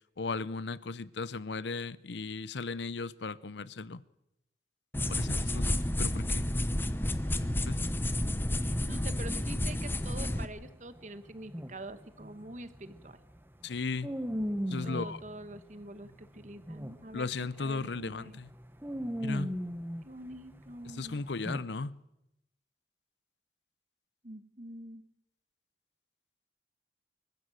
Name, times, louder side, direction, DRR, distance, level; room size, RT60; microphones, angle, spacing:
voice 1, 0.2-4.0 5.1-5.7 6.0-6.5 7.7-7.8 13.6-14.1 14.7-15.2 17.1-18.5 19.2-19.6 20.9-22.0, left 4 dB, 80° left, 0.7 m, -36 dB
sound 1, 4.9-10.4, left 1 dB, 10° left, 0.8 m, -31 dB
voice 2, 8.6-13.2 14.8-18.4 20.0-21.2 24.2-25.0, right 1 dB, 40° right, 1.3 m, -46 dB
sound 2, 10.5-17.2 17.5-17.8 18.2-20.7 21.4-21.6, equal, 10° right, 1.1 m, -37 dB
24.5 x 15.0 x 7.8 m
head